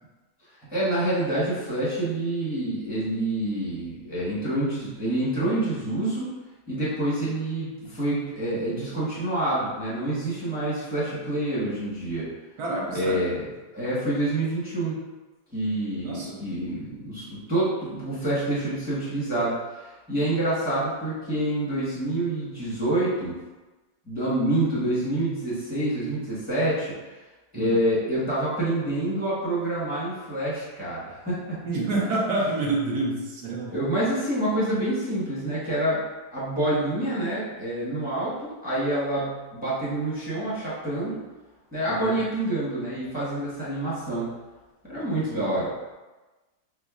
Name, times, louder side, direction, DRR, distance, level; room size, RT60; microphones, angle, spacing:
voice 1, 0.7-6.3 6.7-12.3 12.9-13.4 13.7-14.9 15.5-23.4 24.1-26.9 27.5-31.6 33.7-36.0 36.3-41.2 41.7-44.3 44.8-45.7, right 1 dB, 5° right, -9 dB, 0.7 m, -27 dB
voice 2, 12.6-13.2 16.0-16.4 27.5-27.8 31.6-33.8 41.9-42.2 44.9-45.5, right 2 dB, 65° right, -4 dB, 1.2 m, -28 dB
6.0 x 2.1 x 2.4 m, 1.2 s
omnidirectional pair, 2.1 m